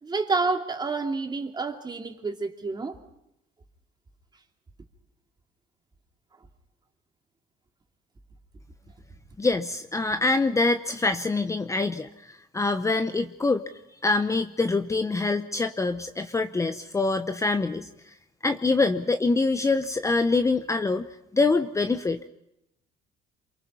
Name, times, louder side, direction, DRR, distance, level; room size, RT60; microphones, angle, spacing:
voice 1, 0.0-3.0, right 3 dB, 25° right, 4 dB, 2.8 m, -29 dB
voice 2, 9.4-13.6 14.0-17.9 18.4-21.1 21.3-22.3, left 3 dB, 20° left, 9 dB, 0.9 m, -25 dB
28.0 x 23.0 x 5.6 m, 0.84 s
cardioid pair, 110°, 17 cm